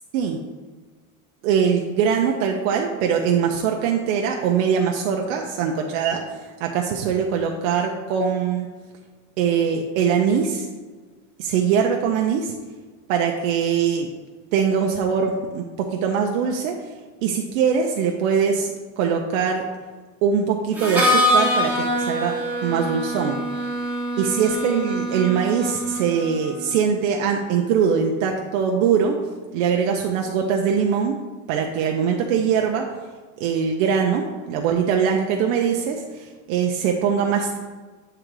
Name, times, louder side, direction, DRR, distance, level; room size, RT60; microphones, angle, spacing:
voice 1, 1.4-8.7 9.4-10.7 11.4-12.5 13.1-14.1 14.5-16.9 17.2-19.6 20.2-22.3 22.6-23.4 24.2-29.2 29.5-31.2 31.5-32.8 33.4-37.6, right 7 dB, 65° right, 2 dB, 0.7 m, -22 dB
Harmonica, 20.8-26.5, equal, 5° right, 0.7 m, -24 dB
7.8 x 3.8 x 4.6 m, 1.4 s
cardioid pair, 175°, 43 cm